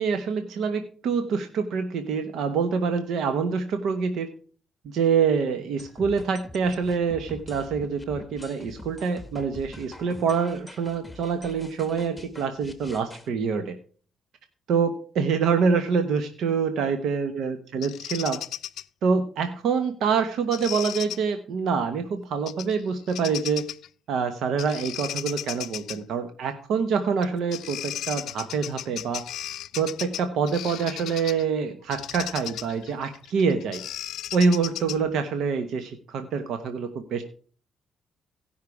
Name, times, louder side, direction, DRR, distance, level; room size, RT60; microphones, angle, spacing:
voice 1, 0.0-4.3 4.8-13.8 14.7-18.4 19.0-23.7 24.1-29.2 29.7-33.8 34.3-37.2, right 5 dB, 75° right, 8 dB, 1.0 m, -26 dB
sound 1, 5.8-13.3, left 2 dB, 5° left, 1.5 m, -44 dB
Bird vocalization bird call bird song, 17.8-18.8 20.5-21.2 22.5-22.8 23.1-23.9 24.6-26.0 27.2-27.3 27.5-31.4 31.9-35.2, left 12 dB, 80° left, 0.4 m, -35 dB
16.5 x 5.6 x 4.8 m, 0.43 s
cardioid pair, 90°, 0 cm